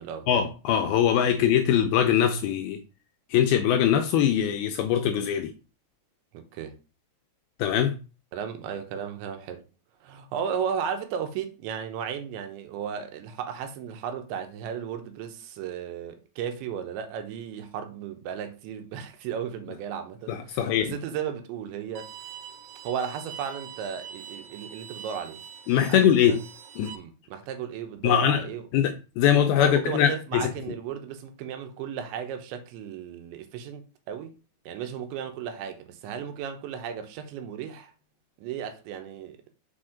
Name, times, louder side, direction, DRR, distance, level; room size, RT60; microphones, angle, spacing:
voice 1, 0.3-2.8 3.3-5.5 7.6-8.0 20.3-21.0 25.7-26.4 26.8-26.9 28.0-28.4 28.7-30.5, left 9 dB, 85° left, 2.2 m, -22 dB
voice 2, 6.3-6.8 8.3-9.6 10.0-22.2 22.9-25.4 25.9-26.4 26.9-28.7 29.3-34.3 34.7-37.9 38.4-39.4, right 8 dB, 90° right, 3.3 m, -35 dB
Bowed string instrument, 22.0-27.0, right 8 dB, 70° right, 2.3 m, -44 dB
6.6 x 4.5 x 5.0 m
omnidirectional pair, 5.1 m